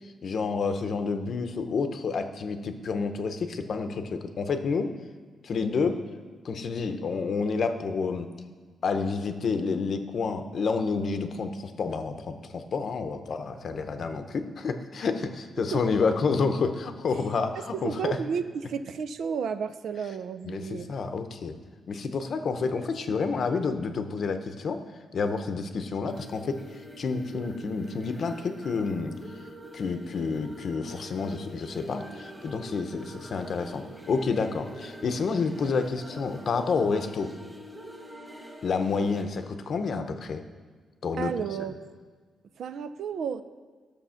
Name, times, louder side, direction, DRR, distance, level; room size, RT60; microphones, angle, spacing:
voice 1, 0.2-4.9 5.4-6.0 6.4-8.3 8.8-18.2 20.4-21.6 21.9-24.8 25.1-26.6 27.0-29.2 29.7-37.3 38.6-40.4 41.0-41.3, left 4 dB, 45° left, 8 dB, 0.8 m, -29 dB
voice 2, 17.8-20.9 41.2-41.8 42.6-43.4, right 6 dB, 65° right, 11 dB, 0.5 m, -32 dB
sound 1, 26.1-39.2, equal, 10° right, 1.7 m, -45 dB
13.0 x 6.9 x 5.7 m, 1.5 s
wide cardioid pair, 160°, 0 cm